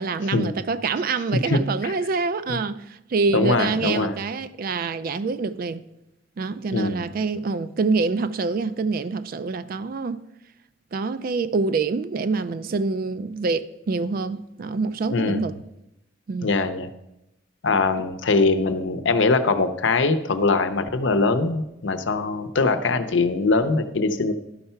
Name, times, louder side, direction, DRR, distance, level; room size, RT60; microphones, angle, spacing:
voice 1, 0.0-5.8 6.4-10.2 10.9-15.5 16.3-16.5, right 4 dB, 50° right, 0.4 m, -26 dB
voice 2, 1.4-1.9 2.5-2.6 3.3-4.2 6.7-7.0 15.1-15.4 16.4-16.9 17.6-24.3, left 3 dB, 80° left, 0.7 m, -22 dB
11.5 x 5.5 x 5.7 m
head